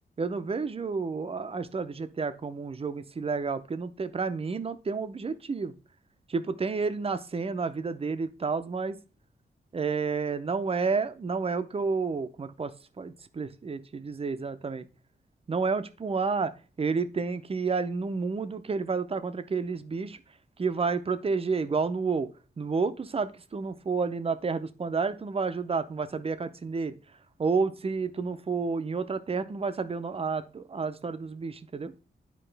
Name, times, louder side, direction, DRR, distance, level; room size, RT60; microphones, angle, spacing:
voice 1, 0.2-5.7 6.3-9.0 9.7-14.8 15.5-16.5 16.8-20.2 20.6-22.3 22.6-27.0 27.4-31.9, right 4 dB, 35° right, 10 dB, 0.6 m, -30 dB
9.8 x 4.8 x 3.4 m, 0.34 s
wide cardioid pair, 120°, 17 cm